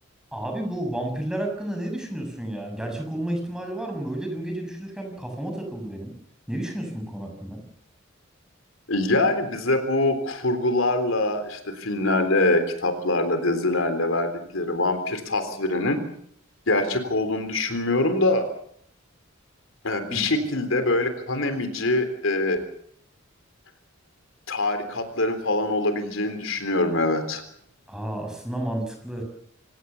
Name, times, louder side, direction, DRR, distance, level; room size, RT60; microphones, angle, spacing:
voice 1, 0.3-6.1 6.5-7.6 20.1-20.3 27.9-29.2, right 1 dB, 5° right, 3 dB, 6.9 m, -31 dB
voice 2, 8.9-16.0 16.7-18.5 19.8-22.6 24.5-27.4, left 2 dB, 75° left, 9 dB, 3.7 m, -24 dB
26.5 x 17.5 x 7.1 m, 0.65 s
head